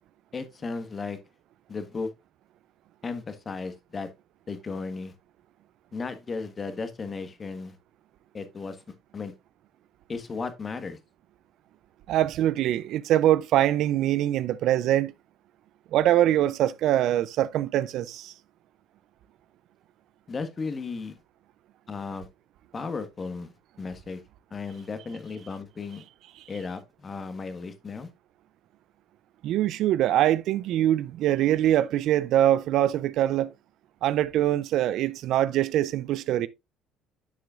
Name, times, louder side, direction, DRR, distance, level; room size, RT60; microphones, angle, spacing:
voice 1, 0.3-1.2 1.7-2.1 3.0-4.1 4.5-5.1 5.9-7.7 8.3-8.8 9.1-9.3 10.1-11.0 20.3-21.1 21.9-22.3 22.7-23.5 23.8-24.2 24.5-26.0 26.5-28.1, left 4 dB, 35° left, 1.4 m, -35 dB
voice 2, 12.1-15.1 15.9-18.3 29.4-33.5 34.0-36.5, right 12 dB, 65° right, 0.4 m, -23 dB
10.0 x 6.6 x 2.5 m
supercardioid pair, 75°, 0 cm